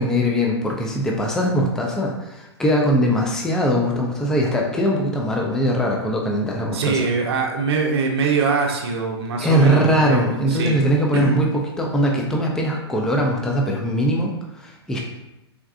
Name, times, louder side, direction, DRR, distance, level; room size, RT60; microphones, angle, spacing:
voice 1, 0.0-7.1 9.4-11.5 11.8-15.0, equal, 5° left, -1 dB, 0.3 m, -21 dB
voice 2, 6.7-10.2 10.5-10.8 11.1-11.4, right 4 dB, 65° right, 1 dB, 0.6 m, -23 dB
3.6 x 2.3 x 2.4 m, 0.94 s
hypercardioid pair, 115°, 14 cm